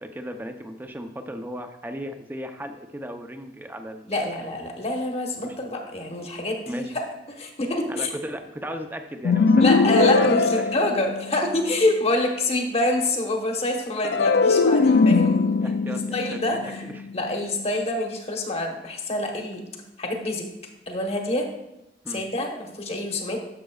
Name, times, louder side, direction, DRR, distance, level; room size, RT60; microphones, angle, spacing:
voice 1, 0.0-4.3 5.4-5.6 6.2-6.3 6.7-6.9 7.9-10.9 15.6-17.0 22.0-22.2, equal, 10° right, 6 dB, 0.6 m, -36 dB
voice 2, 4.1-7.0 7.3-8.1 9.6-15.4 15.9-16.8 17.1-19.6 20.0-20.5 20.9-21.5 22.1-23.4, left 1 dB, 35° left, 2 dB, 1.1 m, -26 dB
sound 1, 9.2-11.6 14.0-17.4, left 4 dB, 70° left, 0.3 m, -20 dB
11.0 x 6.8 x 2.3 m, 0.92 s
head